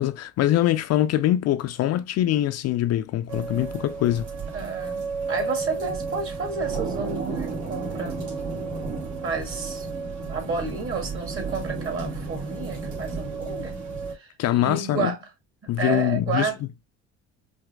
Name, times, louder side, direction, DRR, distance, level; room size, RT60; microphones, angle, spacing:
voice 1, 0.0-4.3 14.4-15.1 15.7-16.5, left 13 dB, 50° left, 0.5 m, -23 dB
sound 1, 3.3-14.1, right 4 dB, 60° right, 1.9 m, -32 dB
voice 2, 4.5-8.2 9.2-13.8 14.1-15.2 15.8-16.6, right 4 dB, 40° right, 2.3 m, -31 dB
5.1 x 2.8 x 2.3 m
hypercardioid pair, 60°, 34 cm